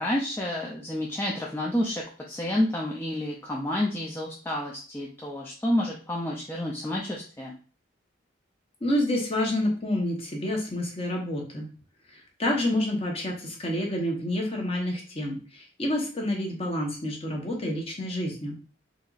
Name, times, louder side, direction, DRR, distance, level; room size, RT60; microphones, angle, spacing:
voice 1, 0.0-7.5, left 1 dB, 10° left, -3 dB, 0.4 m, -29 dB
voice 2, 8.8-11.7 12.1-18.5, left 1 dB, 30° left, 0 dB, 0.9 m, -28 dB
4.0 x 2.9 x 2.4 m, 0.39 s
head